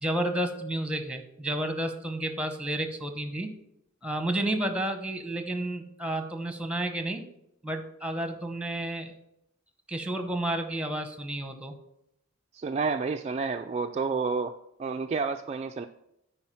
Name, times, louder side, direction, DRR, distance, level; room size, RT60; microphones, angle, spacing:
voice 1, 0.0-3.5 4.0-7.2 7.6-9.2 9.9-11.7, right 1 dB, 5° right, 7 dB, 0.9 m, -31 dB
voice 2, 12.5-14.5 14.8-15.9, right 4 dB, 30° right, 5 dB, 0.3 m, -30 dB
9.7 x 4.6 x 5.7 m, 0.81 s
head